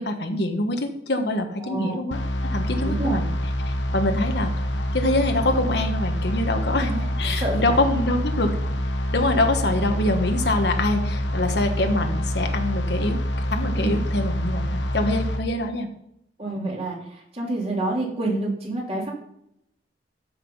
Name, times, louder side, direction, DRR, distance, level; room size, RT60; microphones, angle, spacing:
voice 1, 0.0-3.3 3.7-4.5 4.9-6.9 7.2-8.5 9.1-15.9 16.5-16.7, left 2 dB, 65° left, 5 dB, 1.4 m, -25 dB
voice 2, 1.6-2.0 2.8-3.2 6.8-7.0 7.4-7.8 13.7-13.9 16.4-17.0 17.3-19.1, right 2 dB, 35° right, -3 dB, 3.3 m, -27 dB
sound 1, 2.1-15.4, equal, 85° left, 1.1 m, -26 dB
13.0 x 6.0 x 5.6 m, 0.77 s
head